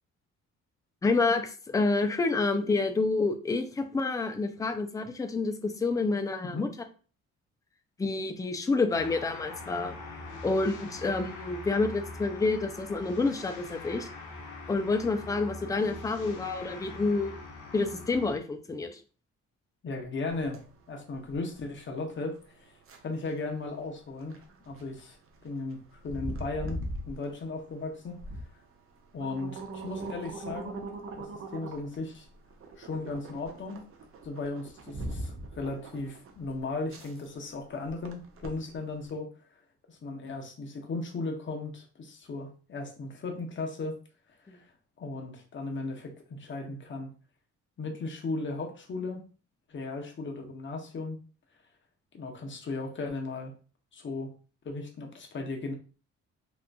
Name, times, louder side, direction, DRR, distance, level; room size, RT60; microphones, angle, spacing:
voice 1, 1.0-6.7 8.0-9.9 10.4-14.1 14.7-17.3 17.7-19.0 44.5-44.6, left 3 dB, 10° left, 6 dB, 0.3 m, -28 dB
sound 1, 8.9-18.4, left 3 dB, 90° left, 0.5 m, -43 dB
voice 2, 19.8-22.8 23.0-24.4 24.7-25.2 25.4-28.2 29.1-30.8 31.1-32.3 32.8-33.8 34.2-39.3 39.9-43.9 44.5-44.7 45.0-47.1 47.8-49.3 49.7-51.2 52.1-53.5 53.9-54.3 54.6-55.7, left 3 dB, 40° left, 2 dB, 0.8 m, -36 dB
sound 2, 20.3-39.1, right 1 dB, 45° right, 0.6 m, -42 dB
2.9 x 2.4 x 2.2 m, 0.39 s
cardioid pair, 90°, 30 cm